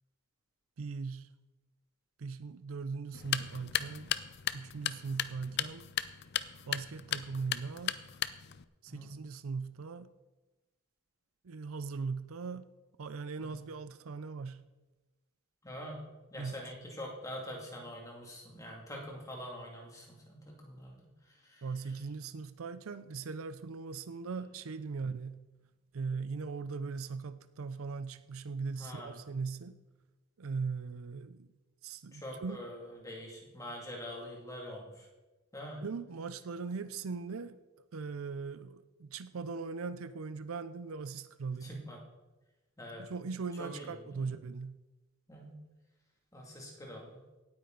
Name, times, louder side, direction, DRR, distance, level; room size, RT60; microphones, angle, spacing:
voice 1, 0.8-1.3 2.2-4.2 4.5-5.9 6.7-8.0 8.8-10.1 11.4-12.7 13.0-14.6 16.4-16.7 21.6-25.4 25.9-29.8 30.4-31.5 31.8-32.6 35.8-37.6 37.9-41.8 43.0-44.8, right 4 dB, 85° right, 13 dB, 0.5 m, -39 dB
sound 1, 3.1-8.6, left 11 dB, 55° left, 0.5 m, -36 dB
voice 2, 15.6-21.1 21.4-21.6 28.8-29.2 32.1-35.1 35.5-35.8 41.6-42.0 42.8-43.1 43.6-43.8 44.1-44.2 45.3-45.6 46.3-47.2, equal, 15° left, -1 dB, 2.4 m, -44 dB
17.5 x 8.8 x 3.9 m, 1.1 s
head